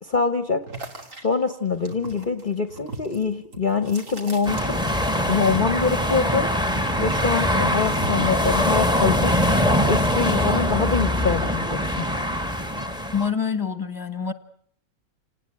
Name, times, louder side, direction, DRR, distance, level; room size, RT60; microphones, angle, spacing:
voice 1, 0.0-0.6 1.2-4.8 5.2-6.5 7.0-9.4 9.9-12.1, left 5 dB, 35° left, 9 dB, 1.2 m, -24 dB
sound 1, 0.7-5.2 5.4-7.1 7.4-8.4, right 2 dB, 60° right, 3.1 m, -40 dB
sound 2, 4.4-13.3, left 1 dB, 5° right, 1.5 m, -22 dB
voice 2, 13.1-14.3, left 6 dB, 15° left, 11 dB, 1.5 m, -26 dB
28.0 x 19.0 x 7.8 m, 0.65 s
omnidirectional pair, 1.5 m